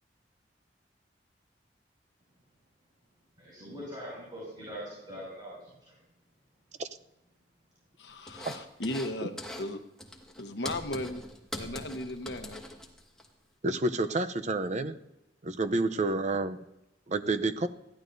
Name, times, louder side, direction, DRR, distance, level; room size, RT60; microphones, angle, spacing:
voice 1, 3.4-6.0, equal, 25° right, -6 dB, 6.2 m, -42 dB
voice 2, 8.0-9.8 10.4-11.2 11.6-12.6, left 1 dB, 70° left, 8 dB, 1.1 m, -36 dB
sound 1, 8.3-9.1 9.4-9.7 10.0-13.3, left 1 dB, 5° left, 1.7 m, -42 dB
voice 3, 13.6-15.0 15.4-16.6 17.1-17.7, right 2 dB, 40° right, 10 dB, 0.6 m, -29 dB
21.0 x 15.0 x 2.6 m, 0.91 s
head